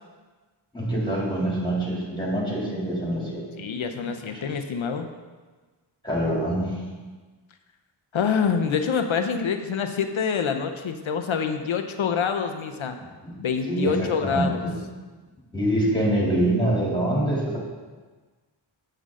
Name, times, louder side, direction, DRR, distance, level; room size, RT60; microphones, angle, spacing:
voice 1, 0.7-3.5 4.0-4.5 6.0-6.8 13.2-13.3 13.7-14.7 15.5-17.6, right 1 dB, 10° left, -4 dB, 2.7 m, -25 dB
voice 2, 3.6-5.1 8.1-13.0 13.4-14.6, left 6 dB, 75° left, 7 dB, 0.7 m, -26 dB
8.3 x 7.8 x 3.7 m, 1.3 s
wide cardioid pair, 85°, 48 cm